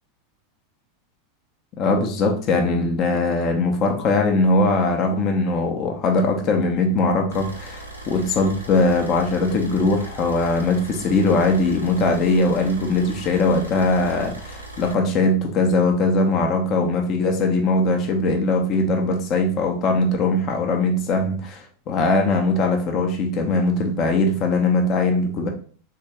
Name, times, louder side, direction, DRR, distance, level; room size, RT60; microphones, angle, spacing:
voice 1, 1.8-25.5, left 2 dB, 40° left, 3 dB, 0.6 m, -20 dB
sound 1, 7.3-14.9, right 2 dB, 85° right, 0.8 m, -39 dB
3.4 x 2.2 x 2.9 m, 0.43 s
figure-of-eight pair, 85°, 0 cm